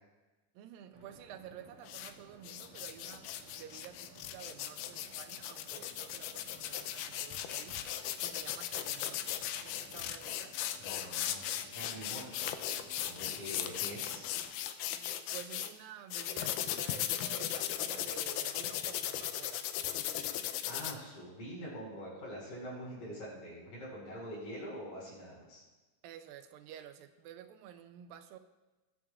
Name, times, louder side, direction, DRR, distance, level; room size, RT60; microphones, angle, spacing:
voice 1, 0.6-7.9 8.2-10.5 13.5-13.7 15.3-19.7 26.0-28.4, right 9 dB, 85° right, 8 dB, 2.3 m, -51 dB
sound 1, 0.9-14.5, right 3 dB, 50° right, 2.4 m, -58 dB
sound 2, 1.8-2.1 2.4-15.7 16.1-20.9, left 11 dB, 80° left, 2.0 m, -37 dB
voice 2, 10.8-11.4 11.7-12.6 13.0-14.3 20.0-25.6, equal, 55° left, -4 dB, 5.6 m, -45 dB
20.5 x 8.9 x 2.4 m, 1.1 s
omnidirectional pair, 4.1 m